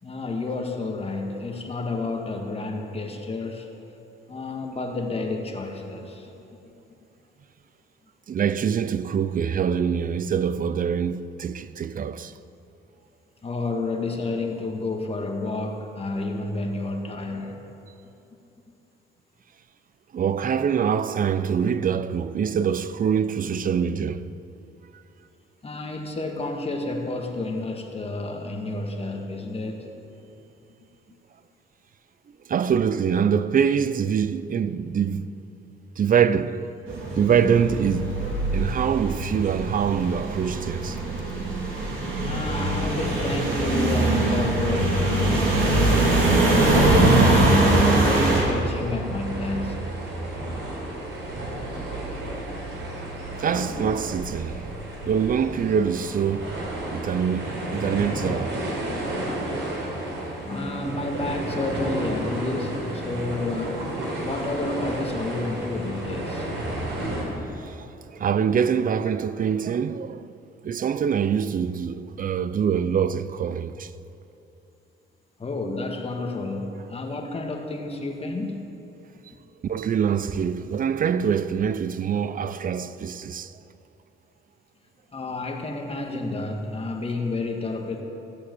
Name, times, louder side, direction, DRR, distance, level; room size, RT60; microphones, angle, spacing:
voice 1, 0.0-3.7 4.3-6.3 13.4-17.6 25.6-29.9 41.9-47.2 47.7-50.0 60.5-63.9 64.2-66.5 75.4-78.8 85.1-88.0, left 2 dB, 30° left, 1.8 m, -30 dB
voice 2, 8.3-12.3 20.1-24.3 32.5-35.3 36.0-36.7 37.2-38.2 38.5-41.0 53.4-54.7 55.1-58.6 67.5-70.3 70.6-73.9 79.6-83.6, right 7 dB, 45° right, 0.6 m, -24 dB
sound 1, 36.9-48.4, right 2 dB, 85° right, 3.4 m, -22 dB
sound 2, 47.6-67.2, right 1 dB, 70° right, 4.1 m, -32 dB
16.0 x 8.5 x 7.9 m
cardioid pair, 90°, 20 cm